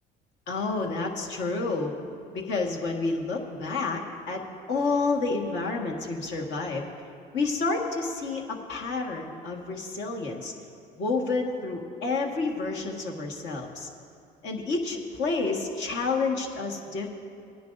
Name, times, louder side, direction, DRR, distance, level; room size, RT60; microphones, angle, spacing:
voice 1, 0.5-1.9 2.3-4.0 4.3-4.4 4.7-6.9 7.3-10.5 11.0-13.9 14.4-17.1, left 3 dB, 70° left, 1 dB, 1.6 m, -29 dB
19.5 x 10.0 x 2.6 m, 2.6 s
supercardioid pair, 90°, 19 cm